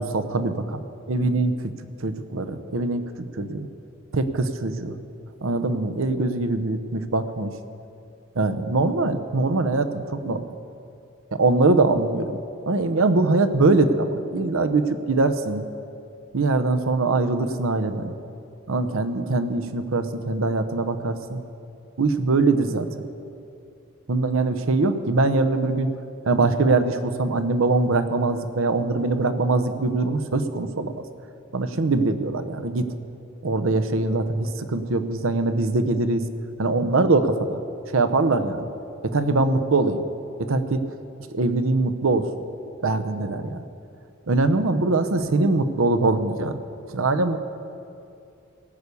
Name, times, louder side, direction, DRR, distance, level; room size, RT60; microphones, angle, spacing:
voice 1, 0.0-0.8 1.1-1.7 2.0-3.0 3.4-3.7 4.1-5.0 5.4-7.5 8.4-10.4 11.3-12.3 12.7-15.7 16.3-18.2 18.7-21.4 22.0-22.9 24.1-25.9 26.3-30.9 31.5-32.9 33.4-36.2 36.6-37.6 37.9-38.6 39.1-40.0 40.5-40.8 41.3-42.3 42.8-43.6 44.3-46.6 46.9-47.4, right 3 dB, 80° right, 9 dB, 0.8 m, -22 dB
17.5 x 6.8 x 8.3 m, 2.6 s
head